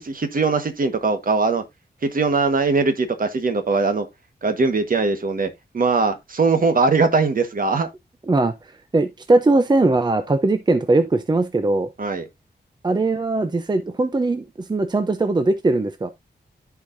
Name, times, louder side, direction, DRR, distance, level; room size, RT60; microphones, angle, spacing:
voice 1, 0.0-1.6 2.0-4.1 4.4-7.9 12.0-12.2, right 4 dB, 55° right, 1.4 m, -21 dB
voice 2, 8.9-11.9 12.8-16.1, right 2 dB, 25° right, 0.6 m, -20 dB
14.0 x 4.8 x 2.6 m
wide cardioid pair, 145°, 18 cm